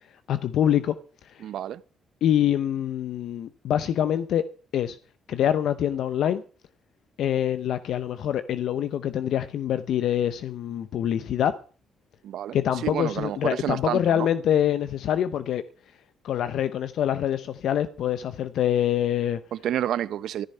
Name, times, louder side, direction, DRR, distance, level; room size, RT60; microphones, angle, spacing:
voice 1, 0.3-0.9 1.2-1.5 2.2-4.4 4.7-5.0 5.3-6.4 7.2-11.5 12.5-15.6 16.2-19.4, left 10 dB, 75° left, 0.7 m, -25 dB
voice 2, 1.4-1.8 12.2-14.3 19.5-20.5, right 11 dB, 75° right, 0.7 m, -29 dB
14.0 x 13.5 x 5.5 m
cardioid pair, 90°, 0 cm